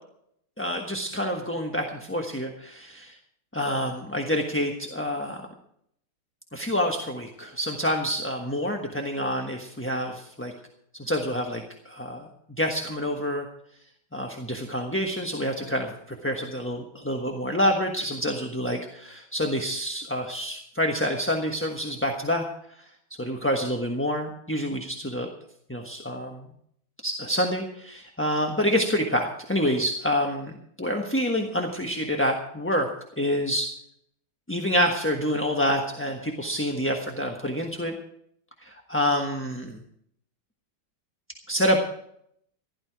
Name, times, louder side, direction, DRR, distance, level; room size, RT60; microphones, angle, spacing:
voice 1, 0.6-3.2 3.5-5.5 6.5-10.5 10.9-12.3 12.6-13.5 14.1-15.9 16.2-22.4 22.8-22.9 23.2-25.3 25.7-26.5 27.0-32.9 33.2-33.7 34.5-37.9 38.6-39.8 41.5-41.8, equal, 10° left, 2 dB, 1.0 m, -27 dB
16.0 x 12.5 x 4.7 m, 0.70 s
omnidirectional pair, 2.1 m